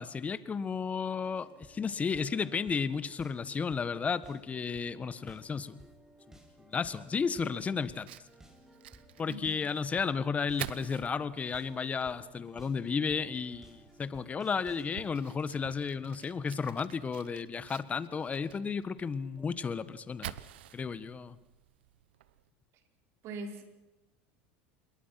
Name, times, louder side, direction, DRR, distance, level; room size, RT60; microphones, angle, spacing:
voice 1, 0.0-5.8 6.3-6.4 6.7-8.1 9.2-20.4 20.7-21.3, left 5 dB, 25° left, 1.5 m, -33 dB
sound 1, 1.2-19.0 19.4-19.5, right 1 dB, 10° right, 5.8 m, -58 dB
Fire, 7.9-22.5, right 13 dB, 85° right, 1.0 m, -50 dB
voice 2, 9.3-9.7 23.2-23.7, right 2 dB, 55° right, 4.8 m, -42 dB
27.5 x 22.0 x 6.0 m
supercardioid pair, 100°, 6 cm